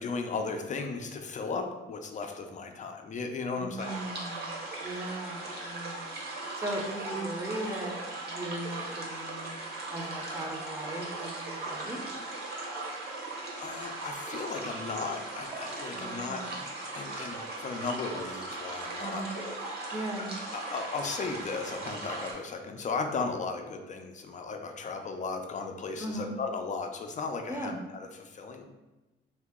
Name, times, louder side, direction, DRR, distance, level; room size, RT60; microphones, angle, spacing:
voice 1, 0.0-3.9 12.9-19.6 20.5-28.6, left 4 dB, 40° left, 4 dB, 0.5 m, -36 dB
voice 2, 3.6-6.1 6.5-9.6 9.9-12.1 15.9-16.5 19.0-19.3 19.9-20.3 26.0-26.3 27.5-27.8, right 1 dB, 15° right, 0 dB, 0.7 m, -38 dB
sound 1, 3.8-22.3, right 2 dB, 55° right, 1.1 m, -38 dB
2.9 x 2.7 x 3.6 m, 1.1 s
cardioid pair, 90°, 20 cm